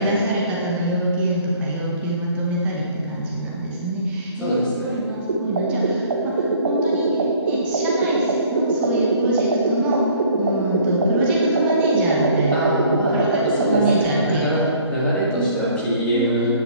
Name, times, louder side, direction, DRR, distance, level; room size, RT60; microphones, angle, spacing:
voice 1, 0.0-10.0 10.4-12.7 13.1-14.6 15.3-15.5 16.1-16.5, right 1 dB, 10° right, -4 dB, 0.7 m, -24 dB
voice 2, 4.4-4.9 12.5-16.5, right 1 dB, 5° left, -8 dB, 1.6 m, -24 dB
sound 1, 5.3-14.0, right 2 dB, 45° right, 1.0 m, -22 dB
9.7 x 6.8 x 4.5 m, 2.5 s
figure-of-eight pair, 150°, 15 cm